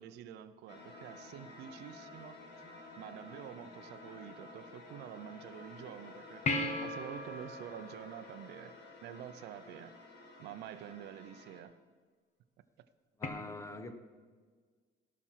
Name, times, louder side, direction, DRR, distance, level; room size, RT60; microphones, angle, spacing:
voice 1, 0.0-2.4 3.0-8.7 9.0-9.9 10.4-11.7, right 10 dB, 80° right, 12 dB, 0.7 m, -48 dB
sound 1, 0.7-11.6, left 2 dB, 80° left, 1.9 m, -52 dB
sound 2, 6.5-9.2 13.2-13.3, left 2 dB, 45° left, 1.4 m, -37 dB
voice 2, 13.2-13.9, left 2 dB, 15° left, 9 dB, 1.0 m, -43 dB
17.0 x 6.1 x 5.8 m, 1.5 s
cardioid pair, 110°, 17 cm